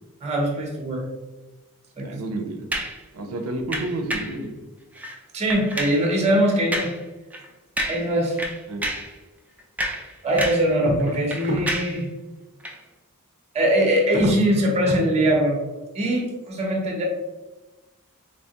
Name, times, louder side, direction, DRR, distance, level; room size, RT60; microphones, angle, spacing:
voice 1, 0.2-1.0 2.0-2.2 5.3-6.9 7.9-8.4 10.2-12.1 13.5-15.6 15.9-17.0, right 1 dB, 30° right, 0 dB, 0.7 m, -21 dB
voice 2, 2.0-2.7 3.1-4.6 8.7-8.8, right 2 dB, 75° right, 5 dB, 0.5 m, -30 dB
sound 1, 2.7-3.0 3.7-4.4 4.9-5.2 5.5-6.0 6.7-7.0 7.3-7.5 7.8-8.1 8.4-9.1 9.6-10.7 11.0-12.0 12.6-12.8, right 1 dB, 5° right, 0.3 m, -29 dB
3.4 x 2.8 x 2.8 m, 1.1 s
head